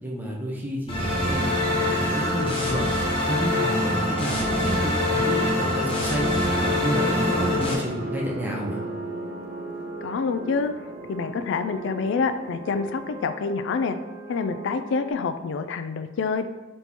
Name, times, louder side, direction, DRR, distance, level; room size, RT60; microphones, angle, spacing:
voice 1, 0.0-2.9 3.2-8.8, equal, 10° right, -2 dB, 0.7 m, -31 dB
sound 1, 0.9-7.7, left 1 dB, 30° left, 0.7 m, -24 dB
sound 2, 0.9-13.2, right 2 dB, 50° right, 0.4 m, -37 dB
sound 3, 3.3-15.1, right 2 dB, 30° right, 1.2 m, -42 dB
voice 2, 10.0-10.7 11.1-14.0 14.3-16.5, left 4 dB, 65° left, 9 dB, 0.3 m, -27 dB
4.0 x 3.0 x 3.5 m, 1.2 s
head